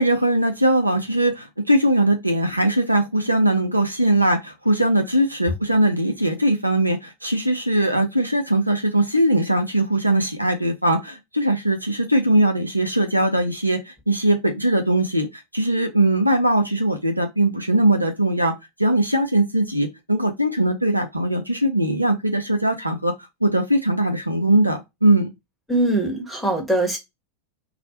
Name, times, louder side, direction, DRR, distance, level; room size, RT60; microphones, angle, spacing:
voice 1, 0.0-15.3 15.5-18.5 18.8-23.1 23.4-25.3, right 1 dB, 85° right, 0.6 m, -20 dB
voice 2, 25.7-27.0, right 1 dB, ahead, 1.0 m, -22 dB
2.4 x 2.1 x 2.8 m
figure-of-eight pair, 90°, 0 cm